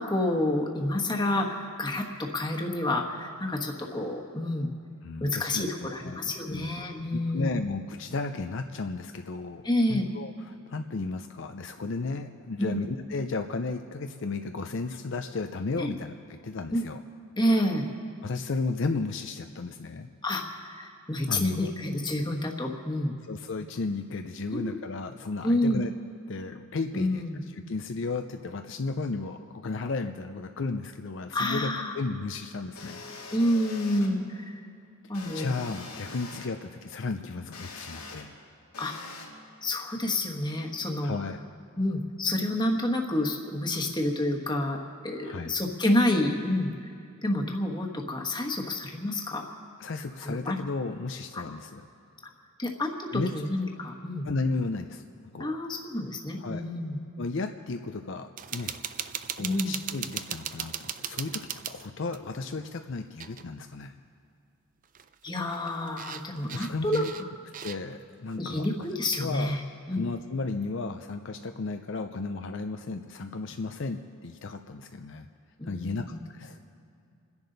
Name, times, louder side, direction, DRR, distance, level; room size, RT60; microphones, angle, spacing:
voice 1, 0.0-4.7 5.2-7.6 9.6-10.1 12.6-12.8 15.8-15.9 16.7-16.8 17.4-17.9 20.2-23.1 24.5-24.8 25.4-25.8 26.9-27.4 31.3-31.9 33.3-34.6 35.1-35.5 38.8-38.9 39.6-41.2 41.8-46.7 47.2-49.4 50.2-50.5 51.3-51.4 52.6-54.3 55.4-57.0 59.4-59.7 65.2-67.0 68.4-69.6 69.9-70.0 75.6-76.2, left 1 dB, 20° left, 1 dB, 1.3 m, -29 dB
voice 2, 5.0-6.7 7.1-17.0 18.2-20.1 21.3-21.7 23.3-25.9 26.3-27.2 27.5-33.0 35.3-38.3 41.0-41.4 45.2-45.5 49.8-51.8 53.1-53.3 53.6-53.7 54.2-55.0 55.3-55.6 56.4-56.6 57.2-58.7 59.4-63.9 66.5-67.1 67.6-68.7 69.2-69.5 69.9-75.3 75.6-76.6, left 3 dB, 60° left, 6 dB, 0.5 m, -34 dB
sound 1, 32.8-34.1 35.1-36.5 37.5-38.2 38.7-39.3, left 3 dB, 90° left, 2.5 m, -43 dB
sound 2, 58.4-62.3 63.2-63.4 63.7-63.8 64.8-68.0 68.5-69.2, right 9 dB, 35° right, 0.4 m, -38 dB
29.0 x 10.5 x 4.0 m, 2.4 s
head